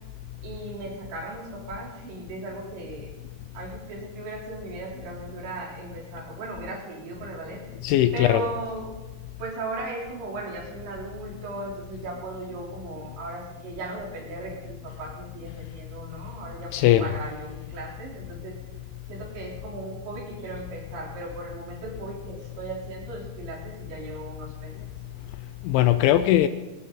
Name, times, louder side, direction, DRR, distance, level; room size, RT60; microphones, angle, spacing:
voice 1, 0.4-3.1 3.5-7.6 8.1-8.9 9.4-18.6 19.1-24.7, right 2 dB, 65° right, -2 dB, 5.6 m, -37 dB
voice 2, 7.8-8.4 16.7-17.1 24.8-24.9 25.4-26.5, left 13 dB, 80° left, 11 dB, 2.8 m, -20 dB
19.5 x 18.5 x 3.9 m, 1.2 s
omnidirectional pair, 5.7 m